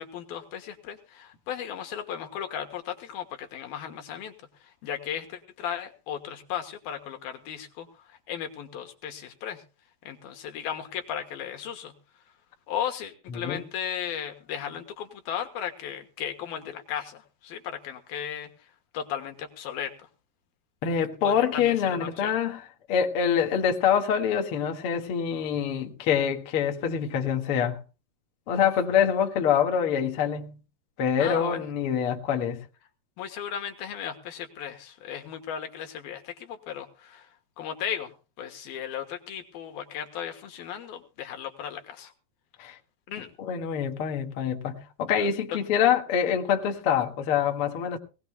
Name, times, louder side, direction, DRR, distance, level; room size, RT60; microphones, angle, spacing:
voice 1, 0.0-4.3 4.6-9.6 10.0-11.9 12.7-20.1 21.2-22.3 31.2-31.7 33.2-37.3 37.6-38.1 38.4-42.1 43.1-43.3 45.2-45.3, left 9 dB, 65° left, 2.9 m, -36 dB
voice 2, 20.8-22.6 22.9-27.8 28.5-30.6 31.0-32.6 42.6-42.8 43.4-48.0, left 8 dB, 45° left, 1.9 m, -25 dB
20.0 x 18.5 x 2.2 m
omnidirectional pair, 4.9 m